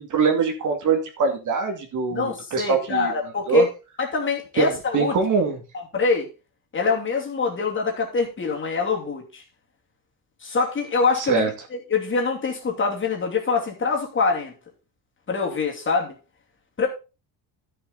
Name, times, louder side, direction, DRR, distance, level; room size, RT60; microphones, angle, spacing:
voice 1, 0.0-3.1 3.5-3.7 4.6-5.6 11.1-11.5, right 5 dB, 45° right, 2.4 m, -23 dB
voice 2, 2.1-3.7 4.0-5.2 5.7-6.3 6.7-9.4 10.4-14.5 15.3-16.1 16.8-16.9, left 4 dB, 30° left, 2.8 m, -24 dB
12.0 x 6.8 x 4.0 m
cardioid pair, 140°, 41 cm